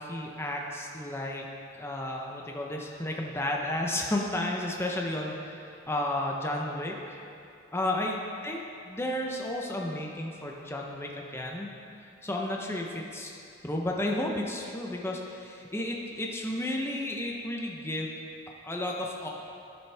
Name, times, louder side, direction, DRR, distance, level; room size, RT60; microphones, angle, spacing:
voice 1, 0.0-1.5 1.8-7.2 7.7-11.7 12.0-13.3 13.6-18.1 18.6-19.3, left 1 dB, 10° left, 0 dB, 0.7 m, -32 dB
11.5 x 7.1 x 3.3 m, 2.5 s
head